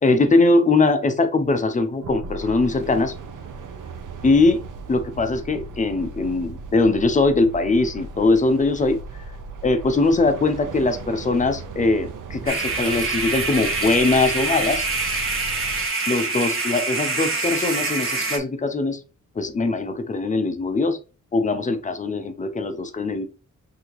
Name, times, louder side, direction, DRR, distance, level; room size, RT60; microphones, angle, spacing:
voice 1, 0.0-3.1 4.2-4.6 4.9-9.0 9.6-14.8 16.1-19.0 19.4-21.0 21.3-23.3, left 3 dB, 25° left, 0.6 m, -21 dB
sound 1, 2.0-15.9, right 3 dB, 90° right, 0.8 m, -37 dB
sound 2, 12.5-18.4, right 3 dB, 45° right, 1.1 m, -25 dB
6.0 x 2.8 x 3.1 m
wide cardioid pair, 155°, 31 cm